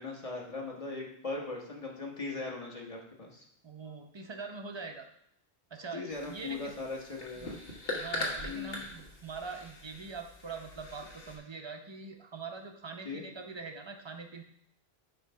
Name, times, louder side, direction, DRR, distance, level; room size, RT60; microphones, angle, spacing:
voice 1, 0.0-3.4 5.9-7.6 8.4-8.8 13.0-13.2, left 3 dB, 35° left, -1 dB, 1.3 m, -39 dB
voice 2, 3.6-5.1 5.7-6.7 7.4-7.6 7.9-14.4, right 4 dB, 30° right, 4 dB, 0.7 m, -43 dB
sound 1, 6.1-11.4, left 2 dB, 65° left, 1.5 m, -41 dB
7.6 x 3.2 x 5.5 m, 0.73 s
omnidirectional pair, 1.1 m